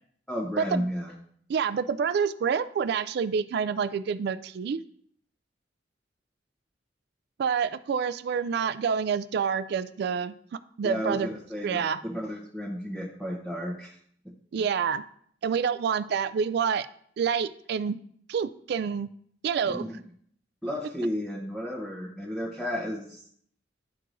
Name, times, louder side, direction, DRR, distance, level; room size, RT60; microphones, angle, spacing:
voice 1, 0.3-1.1 10.8-13.9 19.7-20.0 20.6-23.2, equal, ahead, -5 dB, 0.8 m, -33 dB
voice 2, 1.5-4.8 7.4-10.3 10.8-11.3 11.6-12.0 14.5-15.0 15.4-16.9 17.2-18.0 18.3-19.1 19.4-19.8, right 6 dB, 60° right, 14 dB, 0.3 m, -27 dB
11.5 x 4.6 x 2.6 m, 0.63 s
head